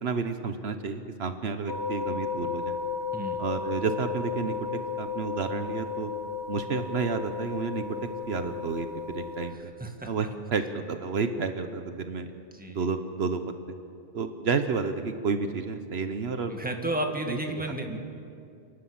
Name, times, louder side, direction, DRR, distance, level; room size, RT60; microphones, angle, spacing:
voice 1, 0.0-2.8 3.4-4.5 5.0-6.1 6.5-7.8 8.3-9.7 10.1-12.3 12.7-13.4 14.1-16.7 17.1-17.6, right 5 dB, 70° right, 8 dB, 1.2 m, -31 dB
sound 1, 1.7-9.6, left 6 dB, 75° left, 1.3 m, -34 dB
voice 2, 12.5-12.8 16.5-18.0, right 1 dB, 10° right, 3 dB, 1.8 m, -32 dB
29.0 x 12.0 x 8.6 m, 2.5 s
omnidirectional pair, 1.1 m